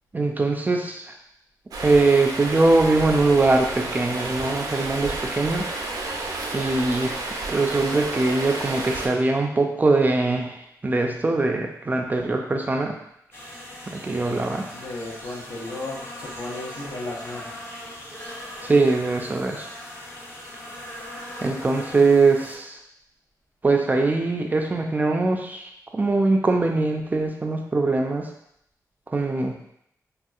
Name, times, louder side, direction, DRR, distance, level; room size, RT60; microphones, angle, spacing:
voice 1, 0.1-1.0 1.8-5.6 6.0-6.1 6.5-7.2 7.5-10.6 10.8-13.0 13.9-14.6 18.6-19.7 21.4-22.8 23.6-28.3 29.1-29.6, right 3 dB, 25° right, 2 dB, 0.4 m, -22 dB
Stream, 1.7-9.1, right 2 dB, 85° right, 0.5 m, -31 dB
sound 1, 13.3-22.6, left 1 dB, 35° left, 0.8 m, -39 dB
voice 2, 14.7-17.5, left 2 dB, 70° left, -3 dB, 0.8 m, -34 dB
3.5 x 2.6 x 2.4 m, 0.75 s
wide cardioid pair, 105°, 6 cm